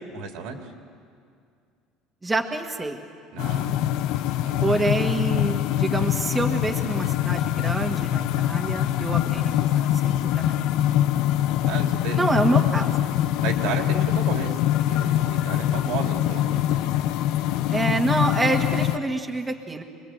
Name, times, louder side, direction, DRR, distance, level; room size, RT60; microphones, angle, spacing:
voice 1, 0.1-0.6 3.3-4.1 4.4-4.7 11.6-12.2 13.4-14.5 14.9-16.8, right 6 dB, 75° right, 3 dB, 2.8 m, -33 dB
voice 2, 2.2-3.0 4.6-10.8 12.1-13.1 17.7-19.8, right 2 dB, 15° right, 2 dB, 1.6 m, -27 dB
sound 1, 3.4-19.0, left 12 dB, 70° left, 0.8 m, -24 dB
25.5 x 20.5 x 7.9 m, 2.3 s
cardioid pair, 120°, 0 cm